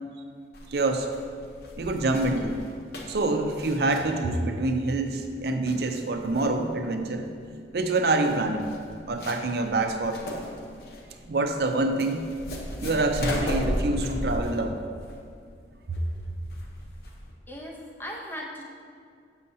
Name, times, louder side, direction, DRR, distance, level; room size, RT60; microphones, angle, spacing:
sound 1, 0.5-17.3, equal, 60° left, 0.8 m, -36 dB
voice 1, 0.7-1.1 1.8-2.6 3.1-7.3 7.7-8.7 9.1-10.2 11.3-12.3 12.8-14.8 15.9-16.0, right 2 dB, 60° right, 6 dB, 0.5 m, -26 dB
voice 2, 17.5-18.8, equal, 10° left, -2 dB, 0.7 m, -38 dB
6.8 x 6.3 x 2.7 m, 2.3 s
head